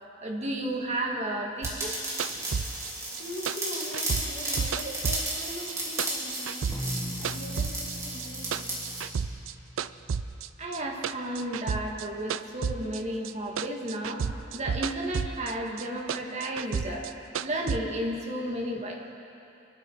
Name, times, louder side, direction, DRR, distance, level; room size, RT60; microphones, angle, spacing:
voice 1, 0.2-2.0 10.6-17.1 17.4-19.1, right 1 dB, 35° right, 0 dB, 1.9 m, -33 dB
sound 1, 1.6-9.1, right 1 dB, 15° right, 2.8 m, -34 dB
sound 2, 1.6-5.7 6.0-7.9 8.2-9.5 9.8-13.3 13.6-15.5 15.8-17.8, right 6 dB, 80° right, 0.4 m, -32 dB
voice 2, 3.2-8.7, left 1 dB, 50° left, -2 dB, 2.0 m, -42 dB
sound 3, 6.7-11.3, equal, 15° left, 1.3 m, -40 dB
24.5 x 12.0 x 4.6 m, 2.7 s
head